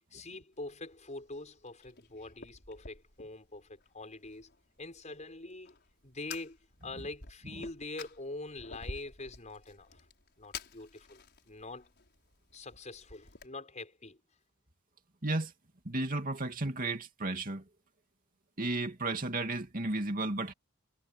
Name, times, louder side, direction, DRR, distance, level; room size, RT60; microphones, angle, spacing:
voice 1, 0.1-4.5 4.8-5.7 6.0-10.1 10.4-11.9 12.5-14.2, left 2 dB, 35° left, 5.7 m, -44 dB
Fire, 0.5-13.5, left 4 dB, 50° left, 6.0 m, -51 dB
voice 2, 15.8-17.6 18.6-20.5, right 2 dB, 40° right, 2.6 m, -33 dB
head